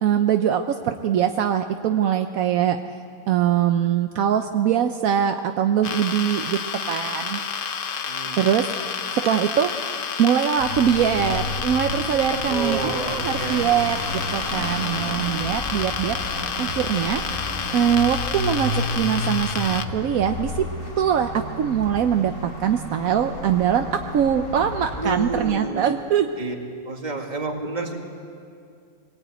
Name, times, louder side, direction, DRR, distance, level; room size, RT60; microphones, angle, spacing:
voice 1, 0.0-2.8 3.3-6.6 6.9-7.4 8.4-9.7 10.2-16.2 16.6-17.2 17.7-20.7 21.0-22.3 22.6-26.3, right 9 dB, 75° right, 6 dB, 1.2 m, -22 dB
sound 1, 5.8-19.8, left 6 dB, 45° left, 0.8 m, -30 dB
voice 2, 8.0-8.4 12.5-13.7 25.0-25.9 26.4-26.6 26.9-28.0, right 3 dB, 30° right, 1 dB, 2.3 m, -29 dB
sound 2, 10.6-25.5, left 2 dB, 75° left, 4.4 m, -32 dB
21.5 x 19.0 x 9.1 m, 2.4 s
omnidirectional pair, 1.5 m